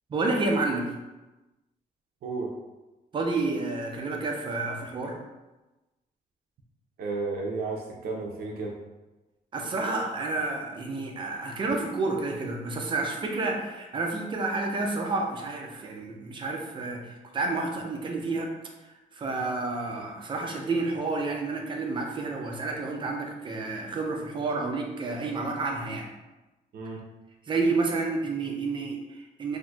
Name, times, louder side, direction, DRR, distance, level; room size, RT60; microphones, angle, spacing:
voice 1, 0.1-1.0 3.1-5.2 9.5-18.5 18.8-26.1 27.5-29.6, right 3 dB, 30° right, 1 dB, 0.4 m, -30 dB
voice 2, 7.0-8.7 26.7-27.0, right 3 dB, 80° right, -2 dB, 0.6 m, -32 dB
4.0 x 2.6 x 2.3 m, 1.1 s
wide cardioid pair, 180°, 16 cm